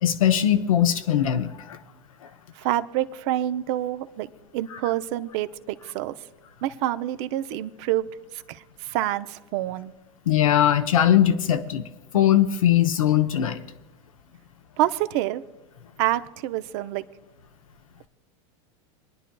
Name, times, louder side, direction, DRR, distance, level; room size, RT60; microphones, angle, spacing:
voice 1, 0.0-1.8 10.3-11.8 12.1-13.6, left 10 dB, 85° left, 7 dB, 0.8 m, -20 dB
voice 2, 2.6-6.1 6.6-8.1 8.3-9.9 14.8-15.4 16.0-17.0, right 13 dB, 60° right, 12 dB, 0.6 m, -27 dB
26.0 x 10.0 x 2.3 m, 1.1 s
hypercardioid pair, 100°, 17 cm